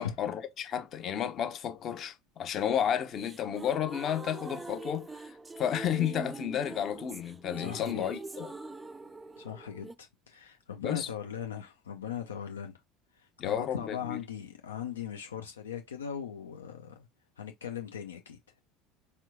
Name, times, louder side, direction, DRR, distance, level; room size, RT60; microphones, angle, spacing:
voice 1, 0.0-8.5 10.8-11.1 13.4-14.2, left 9 dB, 40° left, 0.9 m, -32 dB
sound 1, 2.7-9.9, right 3 dB, 15° right, 0.4 m, -44 dB
voice 2, 7.6-8.0 9.4-12.7 13.2-17.1 17.4-18.4, left 8 dB, 80° left, 0.5 m, -39 dB
4.3 x 3.4 x 2.2 m
figure-of-eight pair, 70°, 0 cm